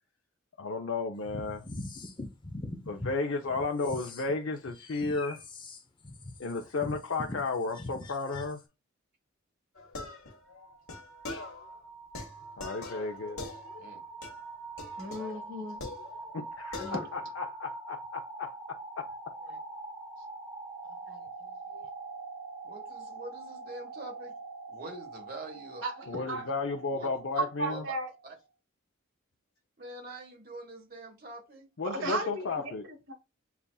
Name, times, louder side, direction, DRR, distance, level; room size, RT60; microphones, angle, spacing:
voice 1, 0.6-1.7 2.9-5.4 6.4-8.6 12.6-13.6 16.3-19.1 26.1-27.8 31.8-32.8, left 3 dB, 65° left, 0.6 m, -33 dB
sound 1, 1.2-3.1 3.5-8.6, left 2 dB, 20° left, 0.6 m, -41 dB
sound 2, 9.8-11.8 12.1-14.0 14.2-14.5 14.8-16.5 16.7-17.3, left 3 dB, 90° left, 1.2 m, -43 dB
sound 3, 10.5-28.3, right 3 dB, 20° right, 1.0 m, -44 dB
voice 2, 15.0-15.8 16.8-17.0 19.5-19.6 21.1-21.2 21.7-21.8 25.8-26.4 27.6-28.1 31.8-33.1, right 2 dB, 70° right, 1.5 m, -36 dB
voice 3, 22.6-24.3 24.7-25.8 26.9-27.1 27.7-27.8 29.8-31.7, right 2 dB, 45° right, 1.3 m, -44 dB
6.8 x 2.4 x 2.3 m
head